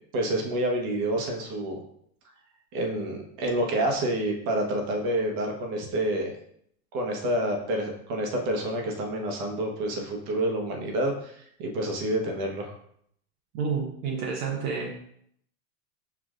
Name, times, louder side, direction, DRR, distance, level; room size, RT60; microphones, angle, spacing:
voice 1, 0.1-1.8 2.7-6.3 6.9-12.8, right 1 dB, 55° right, 2 dB, 1.2 m, -28 dB
voice 2, 13.5-14.9, right 5 dB, 75° right, -1 dB, 1.0 m, -29 dB
6.9 x 2.5 x 2.5 m, 0.68 s
supercardioid pair, 120°, 43 cm